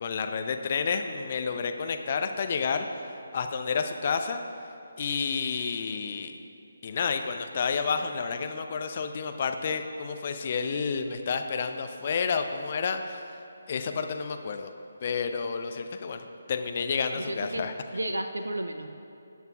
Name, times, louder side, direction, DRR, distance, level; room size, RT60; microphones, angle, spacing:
voice 1, 0.0-2.9 3.3-4.4 5.0-6.3 6.8-13.3 13.7-14.7 15.0-17.7, left 5 dB, 35° left, 6 dB, 0.6 m, -30 dB
voice 2, 17.1-17.6 17.9-18.9, right 1 dB, 70° right, 6 dB, 0.6 m, -32 dB
20.0 x 8.1 x 2.4 m, 2.7 s
figure-of-eight pair, 145°, 0 cm